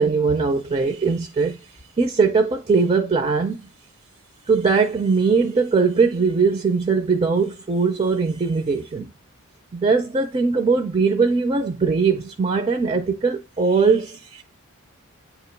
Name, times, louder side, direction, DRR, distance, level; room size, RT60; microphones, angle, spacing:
voice 1, 0.0-3.6 4.5-9.1 9.7-14.4, right 4 dB, 30° right, 0.4 m, -20 dB
8.7 x 2.9 x 4.4 m
head